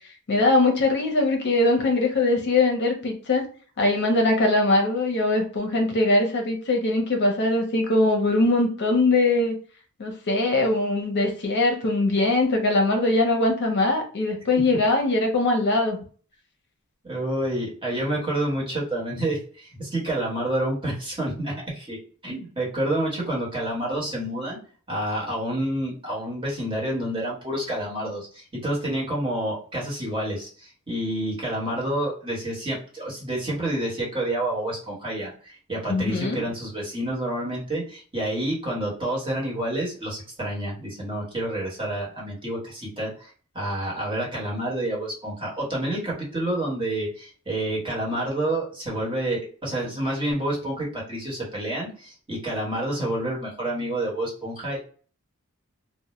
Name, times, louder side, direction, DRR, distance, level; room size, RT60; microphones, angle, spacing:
voice 1, 0.3-3.4 3.8-9.5 10.0-16.0 35.9-36.4, left 2 dB, 50° left, 2 dB, 0.6 m, -21 dB
voice 2, 17.0-24.6 24.9-54.8, right 1 dB, 25° right, -5 dB, 1.1 m, -29 dB
2.1 x 2.1 x 2.9 m, 0.41 s
head